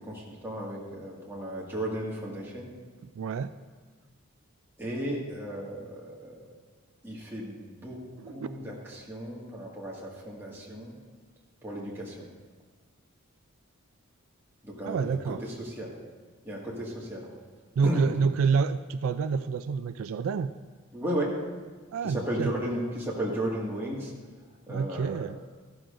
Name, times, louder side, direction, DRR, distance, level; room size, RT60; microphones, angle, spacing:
voice 1, 0.0-2.7 4.8-6.5 7.0-10.9 11.6-12.3 14.6-15.9 16.5-17.3 17.8-18.1 20.9-21.4 22.0-24.1 24.7-25.2, equal, 10° right, -5 dB, 1.8 m, -35 dB
voice 2, 3.1-3.5 8.2-8.5 14.8-15.4 17.8-20.5 21.9-22.5 24.7-25.4, right 5 dB, 75° right, 12 dB, 0.3 m, -28 dB
14.0 x 12.0 x 2.6 m, 1.4 s
head